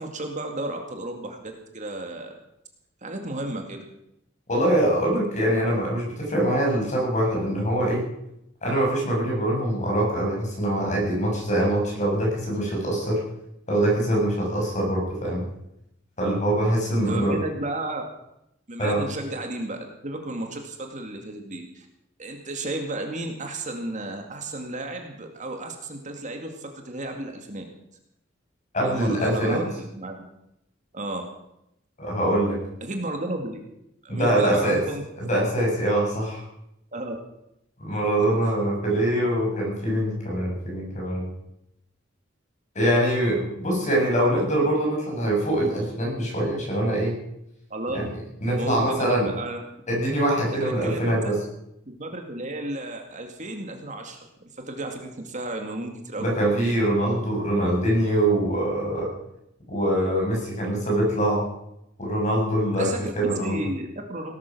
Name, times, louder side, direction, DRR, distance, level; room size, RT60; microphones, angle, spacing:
voice 1, 0.0-2.3 3.0-3.8 17.1-18.0 18.7-21.9 22.2-27.6 28.8-30.2 30.9-31.3 32.8-33.6 34.0-35.0 36.9-37.2 38.4-38.5 47.7-48.0 48.5-49.6 50.5-51.4 51.9-54.3 54.7-56.3 62.8-64.3, right 2 dB, 40° right, 4 dB, 2.2 m, -33 dB
voice 2, 4.5-8.0 8.6-13.2 13.7-15.4 16.2-17.4 18.8-19.0 28.7-29.6 32.0-32.6 34.1-34.8 35.2-36.4 37.8-41.3 42.8-47.2 47.9-48.1 48.4-49.3 49.9-51.4 56.2-59.1 59.7-61.4 62.0-62.9 63.2-63.7, right 1 dB, 40° left, -2 dB, 7.0 m, -23 dB
18.0 x 12.5 x 6.2 m, 0.81 s
head